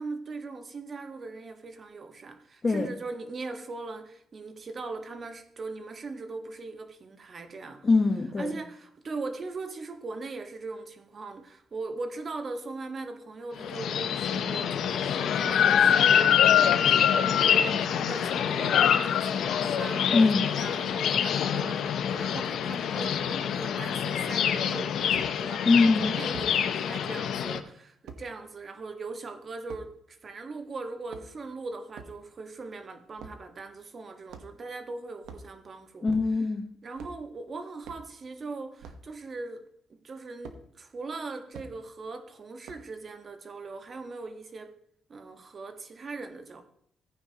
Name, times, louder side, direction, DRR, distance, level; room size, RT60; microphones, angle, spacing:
voice 1, 0.0-7.9 8.4-25.7 26.0-36.1 36.8-39.6 39.9-44.7 45.1-46.6, right 3 dB, 40° right, 1.5 m, -40 dB
voice 2, 2.6-2.9 7.8-8.6 20.1-20.5 25.6-26.1 36.0-36.6, left 3 dB, 30° left, 1.2 m, -22 dB
sound 1, 13.6-27.6, left 8 dB, 70° left, 0.8 m, -25 dB
sound 2, 25.1-25.3 26.3-26.5 28.1-28.2 29.7-29.9 30.9-31.5 31.9-32.2 33.2-33.4 34.3-34.7 35.2-35.5 36.1-36.5 36.9-37.2 37.8-38.1 38.8-39.1 40.4-40.6 41.5-41.7 42.7-43.0, right 5 dB, 90° right, 1.2 m, -45 dB
15.0 x 9.4 x 3.0 m
cardioid pair, 90°, 0 cm